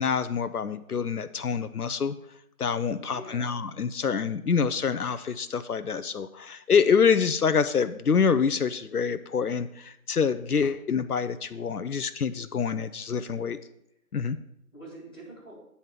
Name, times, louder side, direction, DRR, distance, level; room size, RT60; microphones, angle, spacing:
voice 1, 0.0-2.1 2.6-13.6 14.1-14.4, left 6 dB, 80° left, 11 dB, 0.7 m, -26 dB
voice 2, 3.0-3.5 11.5-11.7 13.2-13.5 14.4-15.5, right 1 dB, ahead, -14 dB, 2.0 m, -46 dB
9.2 x 4.2 x 7.4 m, 0.76 s
figure-of-eight pair, 175°, 45 cm